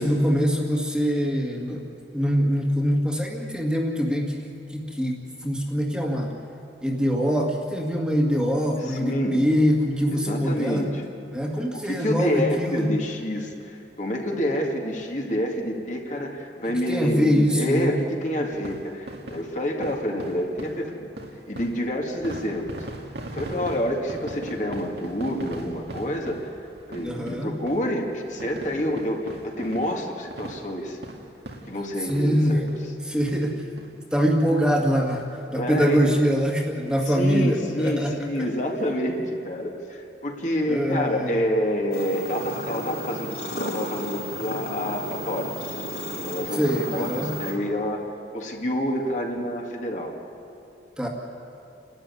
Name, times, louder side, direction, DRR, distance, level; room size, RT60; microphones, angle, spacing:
voice 1, 0.0-1.9 2.1-4.5 4.7-5.2 5.4-6.3 6.8-10.9 11.3-13.0 16.9-18.0 27.0-27.5 32.0-32.6 33.0-33.6 34.1-38.3 40.7-41.4 46.5-47.4 51.0-51.1, equal, 5° right, -1 dB, 2.1 m, -23 dB
voice 2, 8.9-9.4 10.1-11.0 11.7-21.1 21.5-22.8 23.2-26.5 26.9-31.0 31.7-32.7 35.5-36.1 37.1-45.5 46.2-48.0 48.3-50.1, equal, 45° left, 0 dB, 2.2 m, -28 dB
sound 1, 18.5-32.4 32.7-32.8 33.3-33.4 33.8-33.9 34.2-35.2 35.6-35.7 35.9-36.0, right 1 dB, 70° right, 2.3 m, -40 dB
sound 2, 41.9-47.5, equal, 60° left, 5.0 m, -33 dB
30.0 x 13.5 x 9.7 m, 2.7 s
head